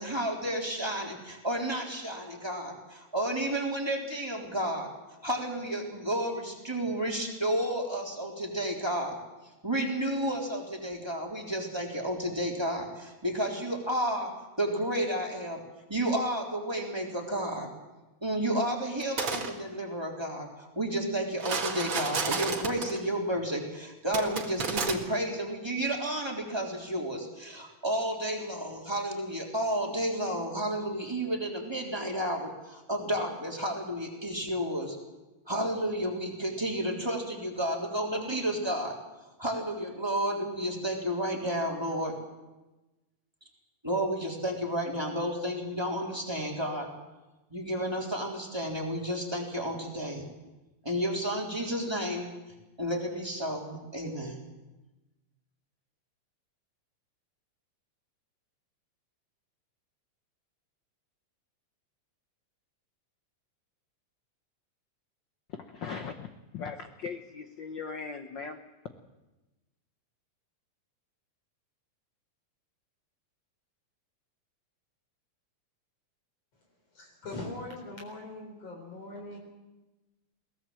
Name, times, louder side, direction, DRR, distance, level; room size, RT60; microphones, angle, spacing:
voice 1, 0.0-4.9 5.2-9.2 9.6-14.3 14.6-15.6 15.9-17.7 18.2-35.0 35.5-39.0 39.4-42.1 43.8-46.9 47.5-50.3 50.8-52.3 52.8-54.4, right 1 dB, 10° right, 3.4 m, -31 dB
sound 1, 19.0-19.5 21.4-23.0 24.1-24.9, right 5 dB, 45° right, 2.4 m, -31 dB
voice 2, 65.5-68.6, left 5 dB, 70° left, 1.1 m, -39 dB
voice 3, 76.9-79.4, left 2 dB, 55° left, 5.0 m, -41 dB
22.0 x 18.5 x 7.6 m
omnidirectional pair, 3.4 m